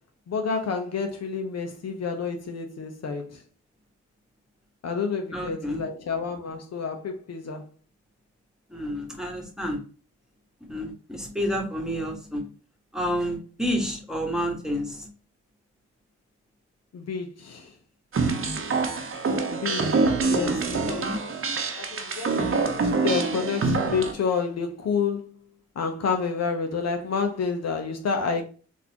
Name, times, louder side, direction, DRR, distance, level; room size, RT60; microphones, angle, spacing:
voice 1, 0.3-3.4 4.8-7.7 16.9-17.7 19.5-21.1 21.8-25.4 25.8-28.4, left 5 dB, 60° left, 0.7 m, -29 dB
voice 2, 5.3-5.9 8.7-9.8 10.7-12.5 12.9-15.1 20.3-21.2, equal, ahead, 1.3 m, -30 dB
sound 1, 18.1-24.1, right 4 dB, 45° right, 0.8 m, -25 dB
3.9 x 2.6 x 2.8 m
cardioid pair, 60°, 29 cm